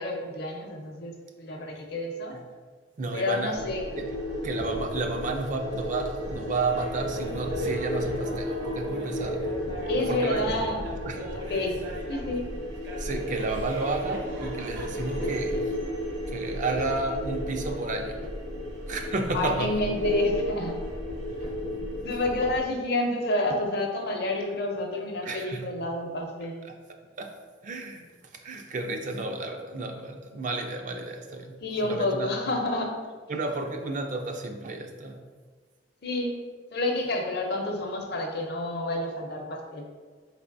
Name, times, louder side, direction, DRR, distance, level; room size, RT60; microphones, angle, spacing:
voice 1, 0.0-2.4 3.1-4.0 9.8-10.9 11.3-12.5 19.3-20.8 21.9-26.6 31.6-33.0 36.0-36.4 36.7-39.9, left 1 dB, 60° left, 2 dB, 0.6 m, -29 dB
voice 2, 3.0-3.6 4.0-4.2 4.4-9.5 10.0-10.5 11.0-11.6 13.0-15.8 16.3-18.3 18.9-19.7 25.2-25.7 26.6-26.7 27.2-27.3 27.6-32.4 33.3-35.2, right 3 dB, 45° right, 4 dB, 0.4 m, -32 dB
sound 1, 3.5-22.6, left 1 dB, 85° right, 1.4 m, -33 dB
Laughter, 6.5-12.4 12.8-15.4, right 1 dB, 65° right, 0.7 m, -41 dB
4.4 x 3.3 x 2.6 m, 1.5 s
head